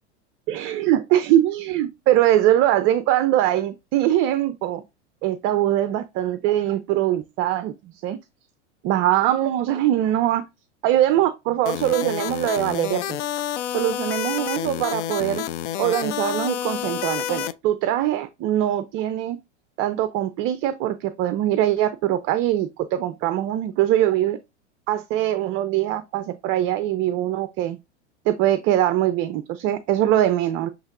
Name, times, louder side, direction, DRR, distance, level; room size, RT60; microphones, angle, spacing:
voice 1, 0.5-4.8 5.2-8.2 8.8-10.4 10.8-13.2 13.7-15.5 15.8-19.4 19.8-24.4 24.9-27.8 28.3-30.7, right 12 dB, 35° right, 0.5 m, -22 dB
sound 1, 11.7-17.5, left 12 dB, 75° left, 0.5 m, -29 dB
7.1 x 3.0 x 2.5 m
hypercardioid pair, 105°, 36 cm